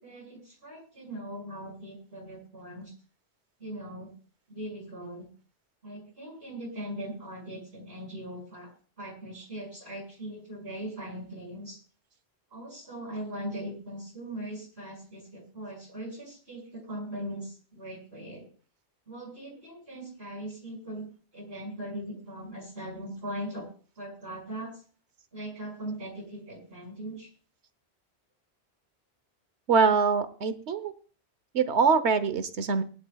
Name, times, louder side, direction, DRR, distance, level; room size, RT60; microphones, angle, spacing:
voice 1, 0.0-2.9 3.6-4.1 4.5-5.3 5.8-8.7 9.0-11.8 12.5-18.5 19.1-21.1 21.3-23.7 24.0-24.8 25.3-27.3, right 1 dB, 65° right, 0 dB, 6.2 m, -40 dB
voice 2, 29.7-30.9 31.5-32.8, right 5 dB, 85° right, 12 dB, 1.2 m, -24 dB
20.0 x 11.0 x 2.3 m, 0.39 s
omnidirectional pair, 1.1 m